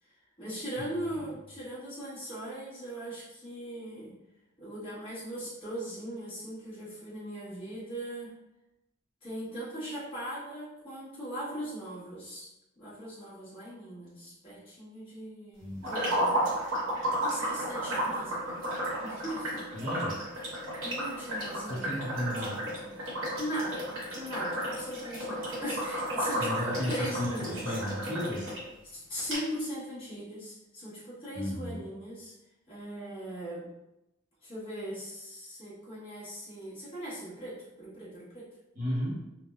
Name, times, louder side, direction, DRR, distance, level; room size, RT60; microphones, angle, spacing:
voice 1, 0.0-4.1 4.6-8.3 9.2-12.5 12.8-16.6 17.2-18.6 19.0-19.8 20.8-23.0 23.4-23.8 24.1-27.8 28.8-32.3 32.7-33.7 34.4-38.5, equal, 25° left, -10 dB, 1.2 m, -39 dB
voice 2, 0.8-1.3 15.6-15.9 19.7-20.2 21.7-22.7 26.4-28.5 31.3-31.8 38.7-39.2, equal, 40° right, -6 dB, 0.8 m, -34 dB
sound 1, 15.8-28.6 29.0-29.1 29.3-29.4, right 1 dB, 85° right, 1.2 m, -33 dB
3.4 x 2.1 x 2.3 m, 0.94 s
head